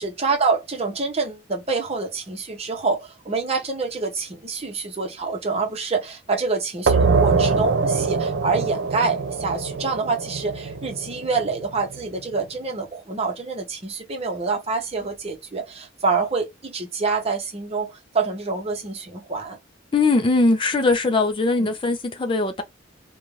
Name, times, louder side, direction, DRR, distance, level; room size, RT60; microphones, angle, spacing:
voice 1, 0.0-19.6 21.6-21.7, right 4 dB, 35° right, 0.8 m, -26 dB
sound 1, 6.9-12.2, right 4 dB, 70° right, 0.6 m, -23 dB
voice 2, 19.9-22.6, left 3 dB, 25° left, 0.4 m, -20 dB
2.6 x 2.2 x 3.0 m
head